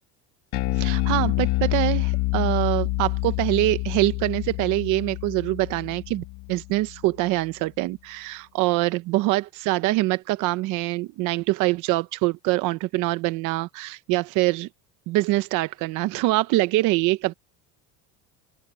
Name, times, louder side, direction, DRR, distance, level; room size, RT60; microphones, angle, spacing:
Bass guitar, 0.5-7.0, left 21 dB, 80° left, 1.8 m, -27 dB
voice 1, 0.8-14.7 15.1-17.3, right 19 dB, 55° right, 0.8 m, -24 dB
open air
cardioid pair, 175°, 36 cm